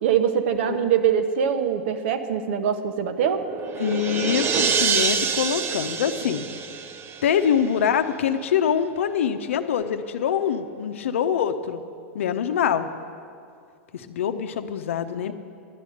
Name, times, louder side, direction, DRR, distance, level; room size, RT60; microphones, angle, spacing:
voice 1, 0.0-3.4, right 8 dB, 65° right, 8 dB, 1.0 m, -23 dB
voice 2, 0.6-0.9 3.8-6.5 7.2-11.8 12.1-12.9 13.9-15.3, left 8 dB, 80° left, 9 dB, 0.7 m, -24 dB
sound 1, 3.1-7.7, right 6 dB, 35° right, 0.7 m, -26 dB
11.5 x 9.1 x 6.5 m, 2.4 s
hypercardioid pair, 105°, 7 cm